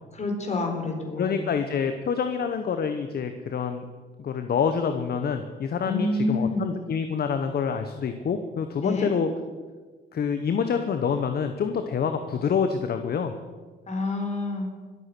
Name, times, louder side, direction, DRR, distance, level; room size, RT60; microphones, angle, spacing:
voice 1, 0.1-1.5 5.8-6.8 8.8-9.1 13.9-14.7, left 2 dB, 35° left, 2 dB, 4.1 m, -28 dB
voice 2, 1.2-3.8 4.2-9.3 10.1-13.3, left 6 dB, 50° left, 8 dB, 1.0 m, -27 dB
22.0 x 8.3 x 6.0 m, 1.4 s
cardioid pair, 90°, 20 cm